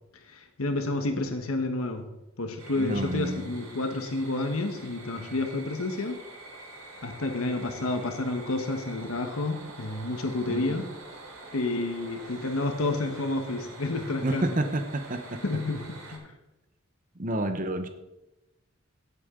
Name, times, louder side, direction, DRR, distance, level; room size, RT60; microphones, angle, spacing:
voice 1, 0.3-2.1 2.4-6.2 7.0-10.8 11.5-14.4 15.4-16.2, left 2 dB, 85° left, 5 dB, 1.2 m, -30 dB
sound 1, 2.6-16.2, right 2 dB, 75° right, 5.1 m, -46 dB
voice 2, 2.8-3.5 10.5-10.8 14.2-15.4 17.2-17.9, right 1 dB, 40° right, 7 dB, 0.9 m, -29 dB
16.5 x 8.5 x 3.8 m, 0.98 s
head